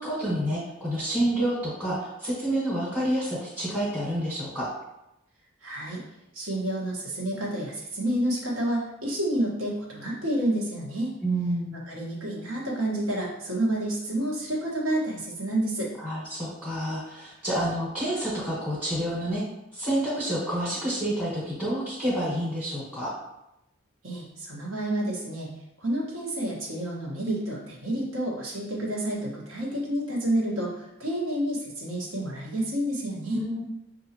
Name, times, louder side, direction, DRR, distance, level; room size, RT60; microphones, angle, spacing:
voice 1, 0.0-4.7 11.2-11.7 16.0-19.4 19.7-23.1 33.3-33.6, right 1 dB, 5° right, -9 dB, 1.2 m, -28 dB
voice 2, 5.6-6.0 6.3-11.1 11.9-15.9 24.0-25.5 25.8-33.4, right 1 dB, 75° right, -3 dB, 1.3 m, -29 dB
6.3 x 2.7 x 2.9 m, 0.85 s
head